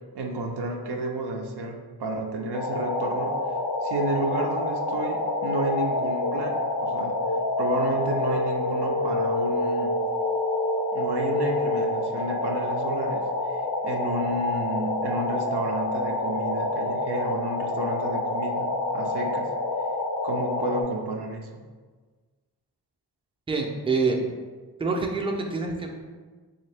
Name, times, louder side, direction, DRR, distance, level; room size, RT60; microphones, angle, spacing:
voice 1, 0.1-3.4 3.8-7.3 7.6-10.0 10.9-19.5 20.2-21.6, right 2 dB, 80° right, 3 dB, 0.5 m, -31 dB
sound 1, 2.5-20.8, left 2 dB, 90° left, 0.5 m, -27 dB
voice 2, 23.5-24.2 24.8-25.9, right 4 dB, 15° right, 0 dB, 0.4 m, -26 dB
3.2 x 2.7 x 3.3 m, 1.4 s
wide cardioid pair, 45°, 39 cm